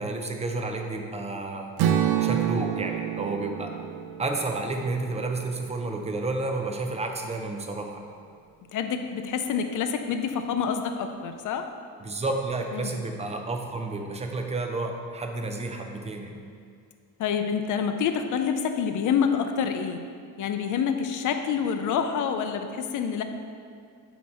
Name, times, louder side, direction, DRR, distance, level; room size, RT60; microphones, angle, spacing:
voice 1, 0.0-1.7 2.2-3.7 4.2-8.0 12.0-16.4, right 2 dB, 15° right, 3 dB, 0.5 m, -31 dB
Strum, 1.8-6.0, right 10 dB, 80° right, 0.6 m, -28 dB
voice 2, 8.7-11.6 12.7-12.9 17.2-20.0 20.4-23.2, left 7 dB, 55° left, 7 dB, 0.5 m, -27 dB
8.1 x 3.0 x 4.8 m, 2.3 s
cardioid pair, 140°, 38 cm